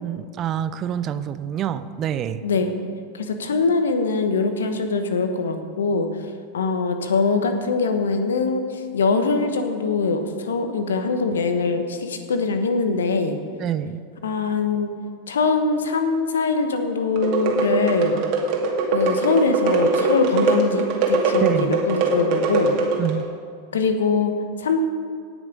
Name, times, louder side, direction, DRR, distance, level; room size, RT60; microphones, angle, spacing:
voice 1, 0.0-2.4 13.6-14.0 21.4-21.8 23.0-23.3, right 10 dB, 40° right, 13 dB, 0.6 m, -26 dB
voice 2, 2.4-2.7 3.1-6.1 6.5-13.4 14.2-14.9 15.3-18.2 18.9-22.8 23.7-24.8, left 4 dB, 80° left, 7 dB, 1.1 m, -22 dB
sound 1, 17.2-23.2, right 3 dB, 55° right, 2.2 m, -22 dB
18.0 x 6.3 x 5.2 m, 2.2 s
hypercardioid pair, 95°, 0 cm